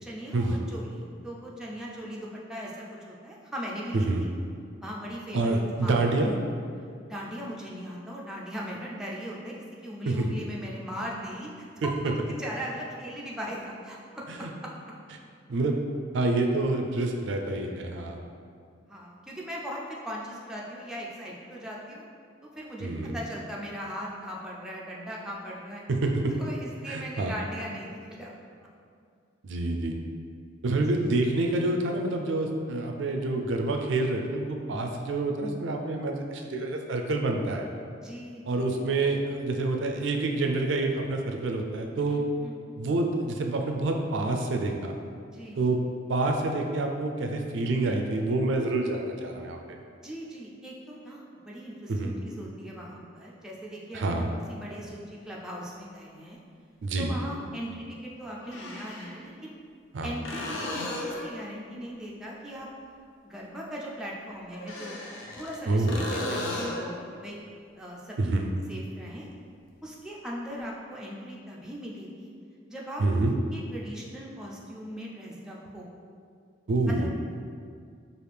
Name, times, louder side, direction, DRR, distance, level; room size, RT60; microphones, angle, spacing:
voice 1, 0.0-4.3 4.8-5.9 7.1-9.6 9.8-11.9 12.3-14.7 18.9-22.1 22.5-25.8 26.4-28.3 28.6-28.7 38.0-39.0 42.0-42.6 45.3-45.6 50.0-56.4 57.0-59.5 60.0-62.7 63.2-65.0 65.4-65.9 66.1-67.4 67.8-69.3 69.8-72.3 72.7-73.0 73.3-75.9 76.9-77.1, equal, 5° right, -4 dB, 0.4 m, -39 dB
voice 2, 3.9-4.2 5.3-6.3 10.1-10.3 11.8-12.1 14.3-14.5 15.5-15.8 16.1-18.2 22.8-23.2 25.9-26.3 26.9-27.3 29.4-29.9 30.6-37.7 38.5-42.2 42.8-45.0 45.6-45.8 46.1-49.8 51.9-52.1 53.9-54.3 56.8-57.2 59.9-60.1 65.7-66.0 68.2-68.5 73.0-73.3 76.7-77.1, right 2 dB, 70° right, 3 dB, 0.4 m, -27 dB
sound 1, 54.9-55.0 57.1-57.2 58.4-59.2 60.2-61.4 64.5-65.6 65.9-66.9 70.6-70.7, left 1 dB, 80° left, 0.6 m, -34 dB
4.8 x 2.4 x 3.3 m, 2.2 s
head